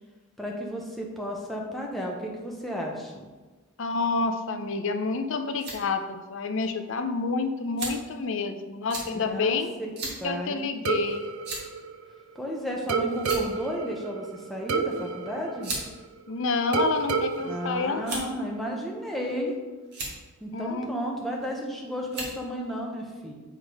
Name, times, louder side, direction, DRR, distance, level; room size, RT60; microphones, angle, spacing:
voice 1, 0.4-3.3 9.1-10.6 12.3-15.7 17.4-19.6 20.4-23.3, equal, ahead, -2 dB, 0.9 m, -33 dB
voice 2, 3.8-9.7 10.2-11.3 16.3-18.4 20.5-21.1, left 4 dB, 60° left, 7 dB, 0.6 m, -29 dB
sound 1, 5.5-5.8 6.6-6.7 7.8-8.1 8.9-9.1 10.0-10.2 10.6-10.7 11.4-11.8 12.7-12.8 13.2-13.6 14.8-14.9 15.6-15.9 16.7-17.3 18.0-18.4 19.2-19.5 19.8-20.1 21.4-21.6 22.1-22.4, right 2 dB, 50° right, 1.7 m, -35 dB
sound 2, 10.9-12.4 12.9-16.3 16.7-18.7, right 5 dB, 70° right, 0.5 m, -31 dB
7.8 x 3.6 x 4.8 m, 1.3 s
head